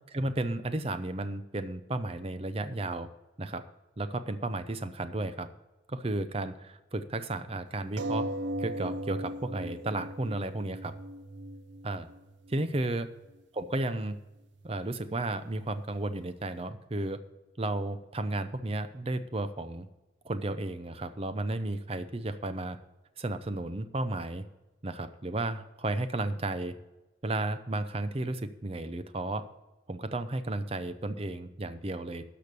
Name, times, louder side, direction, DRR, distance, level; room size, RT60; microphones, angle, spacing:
voice 1, 0.1-3.1 3.4-3.7 4.0-5.5 5.9-8.3 8.6-10.9 11.8-12.1 12.5-13.1 13.5-14.2 14.6-17.2 17.6-19.9 20.2-22.8 23.2-24.4 24.8-26.8 27.2-29.4 29.9-32.2, right 2 dB, 30° right, 11 dB, 0.6 m, -33 dB
sound 1, 8.0-13.0 13.7-13.8 14.1-14.2, right 1 dB, 80° right, 0.6 m, -37 dB
12.5 x 5.1 x 6.7 m, 1.1 s
head